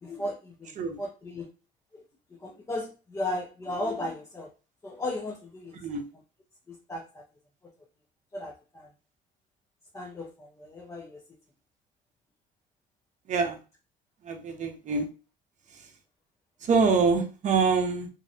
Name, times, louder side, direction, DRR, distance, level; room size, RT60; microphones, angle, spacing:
voice 1, 0.0-1.5 1.9-2.0 2.3-4.5 4.8-5.8 6.7-7.2 8.3-8.9 9.9-11.2, left 1 dB, 15° left, 0 dB, 0.4 m, -36 dB
voice 2, 13.3-13.6 14.2-15.1 16.6-18.1, right 5 dB, 45° right, 4 dB, 0.6 m, -25 dB
2.6 x 2.0 x 2.6 m, 0.34 s
cardioid pair, 110°, 17 cm